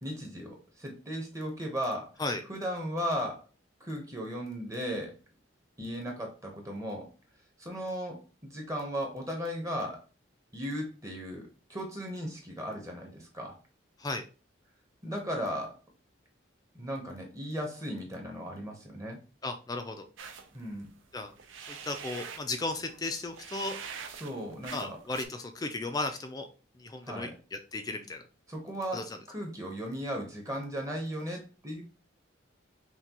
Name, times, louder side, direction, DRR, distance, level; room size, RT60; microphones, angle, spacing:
voice 1, 0.0-2.2 2.5-3.4 3.8-5.1 5.8-7.1 7.6-10.0 10.5-13.6 15.0-15.8 16.7-19.2 20.5-20.9 24.2-25.0 27.0-27.3 28.5-31.8, equal, 15° right, 1 dB, 0.8 m, -36 dB
voice 2, 19.4-20.1 21.1-21.3 21.7-23.8 24.7-26.5 26.8-27.3 27.7-28.2 28.9-29.0, left 2 dB, 20° left, 7 dB, 0.4 m, -35 dB
sound 1, 20.2-25.3, right 6 dB, 80° right, 0.5 m, -44 dB
5.8 x 2.2 x 2.9 m, 0.35 s
head